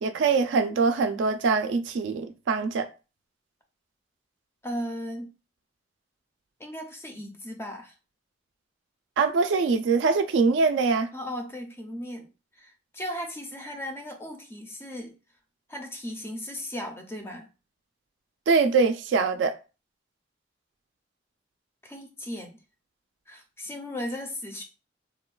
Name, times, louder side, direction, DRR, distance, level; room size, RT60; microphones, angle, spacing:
voice 1, 0.0-2.9 9.2-11.1 18.5-19.5, right 4 dB, 70° right, 0.3 m, -23 dB
voice 2, 4.6-5.3 6.6-7.9 11.1-12.3 12.6-15.1 15.7-17.5 21.8-22.6 23.3-24.6, equal, 15° left, 0.4 m, -36 dB
3.2 x 2.1 x 2.3 m
head